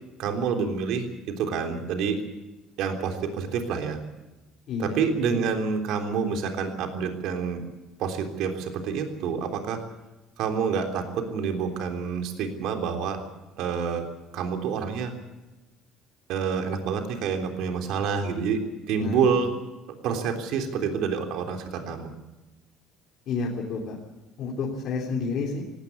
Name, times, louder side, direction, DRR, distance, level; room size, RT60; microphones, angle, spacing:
voice 1, 0.2-2.2 2.8-4.0 4.8-7.6 8.0-9.8 10.4-13.2 13.6-14.0 14.3-15.1 16.3-18.6 18.9-19.5 19.9-22.1, right 6 dB, 65° right, 4 dB, 3.5 m, -28 dB
voice 2, 4.7-5.0 5.3-5.4 19.0-19.2 23.3-24.0 24.4-25.6, left 4 dB, 50° left, -3 dB, 3.6 m, -30 dB
18.5 x 17.0 x 9.8 m, 1.1 s
cardioid pair, 140°, 0 cm